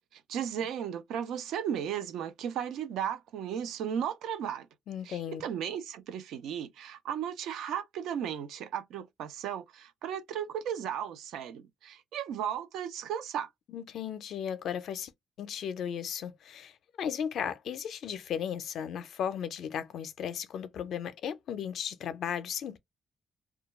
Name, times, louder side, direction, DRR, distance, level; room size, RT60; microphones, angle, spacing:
voice 1, 0.1-4.7 5.1-13.5, right 9 dB, 85° right, 0.4 m, -35 dB
voice 2, 4.9-5.4 13.7-15.1 15.4-22.8, left 8 dB, 70° left, 0.5 m, -35 dB
2.2 x 2.2 x 3.0 m
cardioid pair, 90°, 0 cm